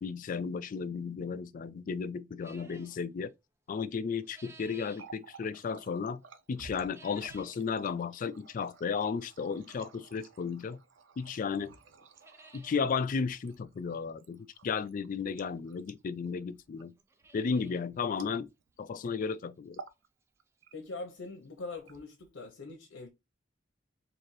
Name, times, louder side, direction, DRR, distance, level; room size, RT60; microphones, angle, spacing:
voice 1, 0.0-3.3 3.7-6.2 6.5-10.8 11.2-11.7 12.5-16.9 17.3-18.5 18.8-19.8, left 5 dB, 45° left, 0.3 m, -34 dB
sound 1, 2.4-3.0 3.9-5.1 6.8-7.6 8.0-8.1 8.9-9.0 10.7-10.8 11.2-11.3 11.6-11.7 12.0-12.8 13.1-13.2 13.5-13.6 15.1-15.2 16.0-16.1 16.3-16.4 16.9-17.9 18.2-18.3 18.8-18.9 19.3-19.4 21.2-21.3 21.4-21.5 22.0-22.1, right 3 dB, 15° right, 0.5 m, -56 dB
Water tap faucet, 4.8-18.8 19.1-19.3 19.6-20.1 20.4-21.1 21.7-22.5, right 5 dB, 85° right, 0.5 m, -54 dB
voice 2, 20.7-23.1, left 3 dB, 85° left, 0.8 m, -42 dB
3.9 x 2.6 x 3.1 m
head